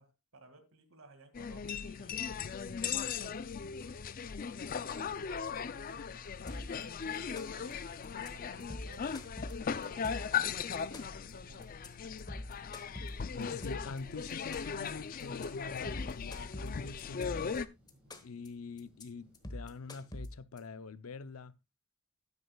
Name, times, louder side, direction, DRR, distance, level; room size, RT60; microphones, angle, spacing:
voice 1, 0.0-2.4 3.0-4.0 4.7-7.1 7.5-11.8 17.9-18.3, right 2 dB, 70° right, 2.1 m, -58 dB
sound 1, 1.3-17.7, left 6 dB, 40° left, 0.4 m, -38 dB
sound 2, 1.8-20.2, left 1 dB, 5° right, 3.8 m, -67 dB
sound 3, 6.5-6.8 7.1-7.7 8.0-8.3 8.6-10.4 10.7-11.3 11.6-11.9 12.2-14.0 14.3-14.9 15.2-15.5 15.8-17.6 17.9-18.5 18.8-19.0 19.3-20.6, left 1 dB, 20° left, 1.1 m, -43 dB
voice 2, 13.4-17.6 18.2-21.5, left 4 dB, 85° left, 0.6 m, -45 dB
12.5 x 9.6 x 2.3 m
head